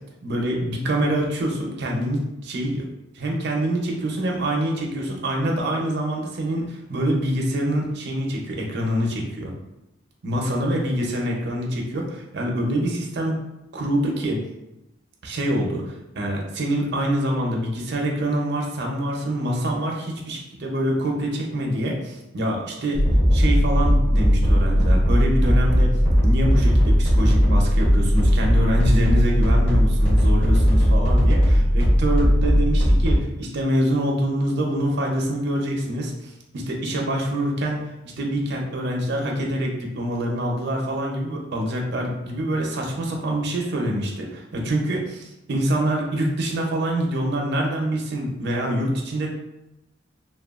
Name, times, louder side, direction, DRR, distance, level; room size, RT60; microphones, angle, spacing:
voice 1, 0.2-2.9 3.1-9.5 10.2-13.4 13.7-14.4 15.2-23.0 23.3-25.9 26.2-49.3, right 1 dB, 60° right, 0 dB, 0.5 m, -25 dB
sound 1, 22.9-33.2, equal, 30° left, 0.9 m, -18 dB
2.9 x 2.2 x 2.3 m, 0.92 s
head